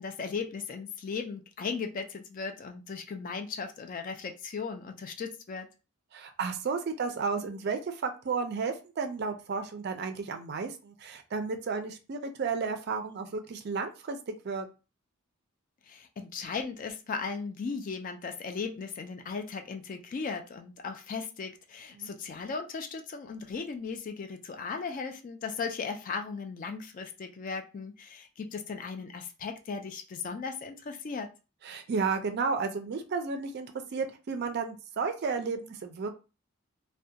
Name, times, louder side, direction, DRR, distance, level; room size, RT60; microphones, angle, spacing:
voice 1, 0.0-5.7 15.9-31.3, left 5 dB, 40° left, 5 dB, 0.3 m, -37 dB
voice 2, 6.1-14.7 22.0-22.1 31.6-36.1, right 5 dB, 50° right, 7 dB, 0.4 m, -33 dB
2.3 x 2.1 x 2.7 m, 0.31 s
head